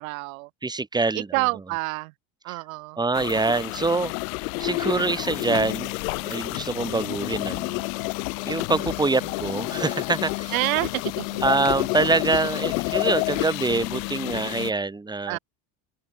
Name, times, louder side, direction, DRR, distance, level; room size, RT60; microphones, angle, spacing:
voice 1, 0.0-0.5 1.1-2.1 2.4-3.0 8.8-8.9 10.5-11.4 15.3-15.4, right 25 dB, 85° right, 2.9 m, -28 dB
voice 2, 0.6-1.3 3.0-4.1 4.6-5.9 6.2-7.8 8.4-10.5 11.4-15.4, right 3 dB, 10° right, 3.0 m, -25 dB
sound 1, 3.1-14.7, left 28 dB, 80° left, 3.1 m, -29 dB
open air
cardioid pair, 135°, 40 cm